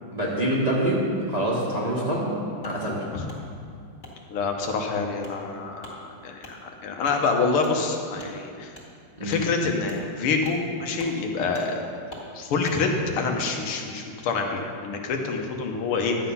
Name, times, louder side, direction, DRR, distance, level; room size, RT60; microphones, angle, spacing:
voice 1, 0.1-1.0 1.3-2.4 2.6-3.1 9.2-9.4, right 1 dB, 20° right, -5 dB, 1.4 m, -25 dB
Wood, 2.6-2.8 3.3-3.4 4.0-4.2 4.6-4.8 5.2-5.4 5.8-6.0 6.4-6.6 7.0-7.2 7.6-7.7 8.2-8.3 8.7-8.9 9.3-9.4 9.8-10.0 10.4-10.6 10.9-11.1 11.5-11.7 12.1-12.3 12.6-12.8, left 1 dB, 35° left, 2.2 m, -44 dB
voice 2, 4.3-8.7 9.2-11.8 12.4-12.9 13.2-16.2, left 4 dB, 80° left, 2 dB, 1.9 m, -27 dB
11.5 x 7.8 x 5.5 m, 2.4 s
omnidirectional pair, 2.4 m